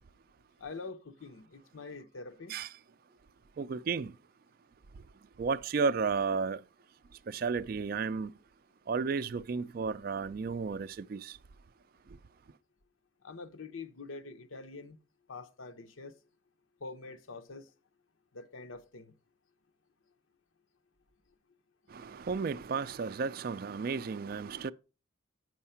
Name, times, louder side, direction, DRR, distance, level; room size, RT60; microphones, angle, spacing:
voice 1, 0.6-2.6 13.2-15.0 15.3-16.2 16.8-17.7 18.3-19.1, left 3 dB, 85° left, 0.8 m, -45 dB
voice 2, 3.6-4.2 4.9-5.0 5.4-6.6 7.1-8.3 8.9-11.4 12.1-12.2 21.9-24.7, right 5 dB, 45° right, 0.3 m, -33 dB
7.9 x 5.6 x 5.6 m
head